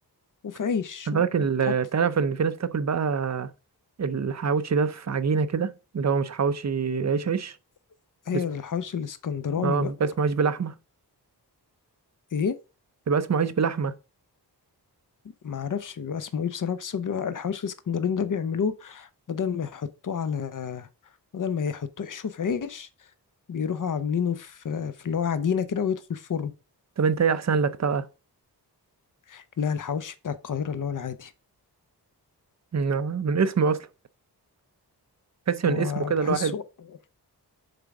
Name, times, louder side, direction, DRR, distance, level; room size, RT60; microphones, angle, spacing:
voice 1, 0.4-1.2 1.6-1.7 8.3-9.9 12.3-12.6 15.4-20.9 21.3-22.9 23.5-26.5 29.3-31.3 35.6-37.0, left 7 dB, 50° left, 0.7 m, -29 dB
voice 2, 1.1-3.5 4.0-7.6 8.3-8.4 9.6-10.7 13.1-13.9 27.0-28.0 32.7-33.9 35.5-36.5, right 5 dB, 40° right, 0.6 m, -25 dB
6.7 x 3.8 x 4.8 m
wide cardioid pair, 125°, 40 cm